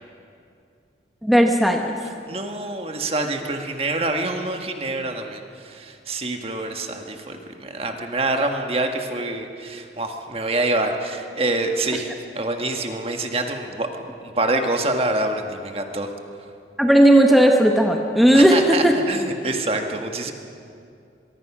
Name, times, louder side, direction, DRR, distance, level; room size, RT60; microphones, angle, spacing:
voice 1, 1.2-1.8 16.8-18.9, right 1 dB, ahead, 2 dB, 1.2 m, -15 dB
voice 2, 2.3-13.9 14.4-16.1 18.3-20.3, right 2 dB, 35° right, 4 dB, 1.6 m, -26 dB
23.5 x 23.0 x 6.1 m, 2.5 s
head